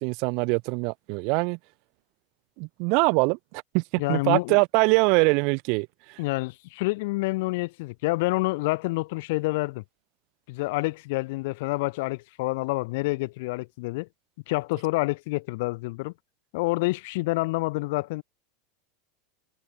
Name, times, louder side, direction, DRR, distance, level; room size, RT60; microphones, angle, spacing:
voice 1, 0.0-1.6 2.6-6.2, right 33 dB, 50° right, 3.7 m, -23 dB
voice 2, 4.0-4.6 6.2-9.8 10.5-14.1 14.5-16.1 16.5-18.2, left 23 dB, 65° left, 7.1 m, -28 dB
supercardioid pair, 150°, 0 cm